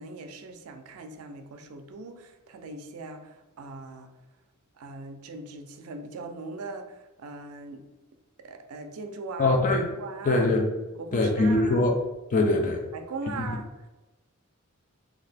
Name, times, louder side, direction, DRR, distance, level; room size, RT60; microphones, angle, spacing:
voice 1, 0.0-4.1 4.8-7.8 8.4-9.6 10.0-10.5 11.0-11.9 12.9-13.7, right 3 dB, 75° right, 6 dB, 0.4 m, -40 dB
voice 2, 9.4-9.9 10.3-10.6 11.1-12.0 12.3-12.8 13.4-13.5, left 2 dB, 35° left, 1 dB, 0.4 m, -22 dB
2.8 x 2.3 x 3.3 m, 1.1 s
head